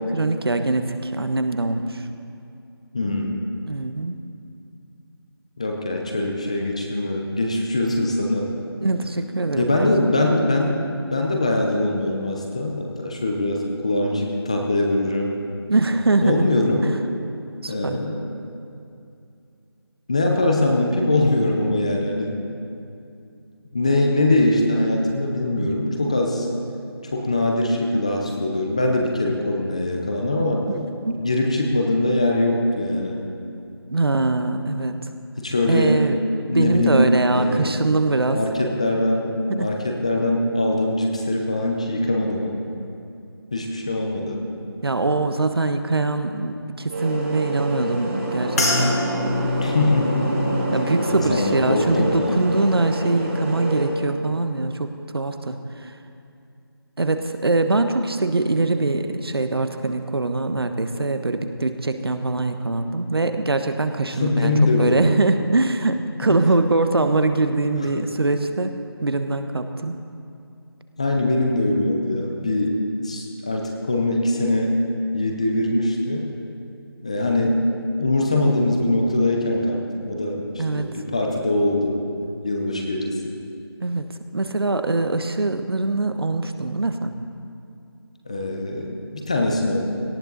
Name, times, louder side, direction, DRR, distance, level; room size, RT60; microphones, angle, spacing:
voice 1, 0.0-2.0 3.7-4.2 8.8-9.9 15.7-16.5 16.8-16.9 17.6-18.0 25.5-25.7 30.7-31.3 33.9-35.0 35.7-36.2 36.5-38.4 39.5-39.7 44.8-49.0 50.7-55.9 57.0-70.0 72.4-72.5 80.6-80.9 83.8-87.1, right 2 dB, 70° right, 8 dB, 1.1 m, -23 dB
voice 2, 2.9-3.4 5.6-8.5 9.6-10.8 11.1-15.3 16.2-16.9 17.7-18.2 20.1-22.4 23.7-26.5 27.1-30.6 31.2-33.2 35.4-36.0 36.5-37.7 38.3-39.3 39.5-42.6 43.5-44.4 49.6-50.3 51.1-52.4 64.0-65.1 67.8-68.0 71.0-72.8 73.0-74.7 75.1-76.3 77.0-77.6 78.0-83.4 88.3-89.8, left 2 dB, 15° left, 1 dB, 0.7 m, -22 dB
sound 1, 46.9-53.9, right 1 dB, 30° right, 2.6 m, -27 dB
sound 2, 48.6-53.1 53.4-54.1 54.7-54.9, left 2 dB, 40° left, 2.1 m, -29 dB
18.0 x 13.5 x 4.0 m, 2.5 s
figure-of-eight pair, 175°, 13 cm